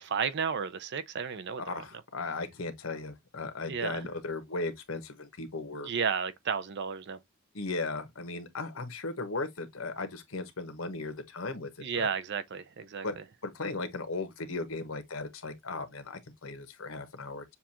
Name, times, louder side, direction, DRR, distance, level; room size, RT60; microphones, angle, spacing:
voice 1, 0.1-1.8 3.7-4.1 5.7-7.2 11.8-13.2, right 6 dB, 55° right, 0.5 m, -33 dB
voice 2, 1.6-5.9 7.5-11.7 12.0-12.1 13.0-13.2 13.4-17.4, left 3 dB, 85° left, 1.1 m, -37 dB
7.0 x 2.4 x 2.8 m
head